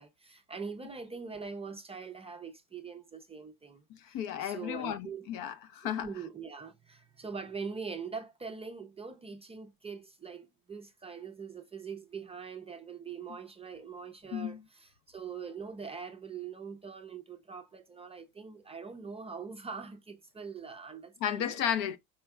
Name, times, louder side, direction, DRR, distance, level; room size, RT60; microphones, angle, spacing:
voice 1, 0.0-5.3 6.0-21.6, right 5 dB, 15° right, 0.5 m, -43 dB
voice 2, 3.9-6.1 14.3-14.6 21.2-22.0, left 9 dB, 55° left, 0.7 m, -33 dB
4.4 x 4.4 x 2.2 m
supercardioid pair, 120°, 41 cm